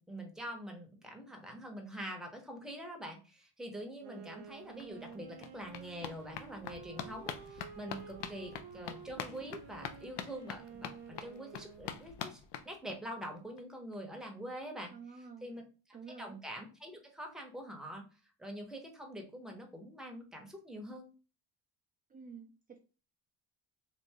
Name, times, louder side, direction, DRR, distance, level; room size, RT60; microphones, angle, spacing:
voice 1, 0.0-15.6 16.2-18.1 18.4-21.1, equal, ahead, 2 dB, 0.8 m, -45 dB
Wind instrument woodwind instrument, 4.0-12.3, right 8 dB, 70° right, 0.6 m, -52 dB
sound 1, 4.5-4.6 4.8-13.3 13.6-13.7 13.9-14.0 14.3-14.4, left 8 dB, 65° left, 0.5 m, -45 dB
voice 2, 14.9-15.5 15.9-16.3 22.1-22.8, right 5 dB, 20° right, 1 dB, 0.4 m, -50 dB
3.4 x 2.5 x 2.8 m, 0.34 s
cardioid pair, 100°, 43 cm